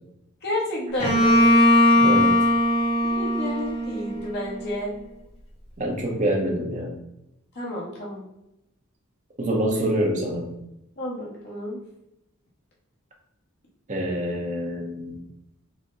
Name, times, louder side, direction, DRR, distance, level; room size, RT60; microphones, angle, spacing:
voice 1, 0.4-1.5 3.0-4.9 7.5-8.2 11.0-11.8, left 1 dB, 50° left, -4 dB, 1.0 m, -30 dB
Bowed string instrument, 1.0-4.7, left 1 dB, 25° left, 0.8 m, -19 dB
voice 2, 1.9-2.3 5.8-6.9 9.4-10.5 13.9-15.2, right 1 dB, 35° right, -1 dB, 0.9 m, -26 dB
4.1 x 2.1 x 3.6 m, 0.85 s
head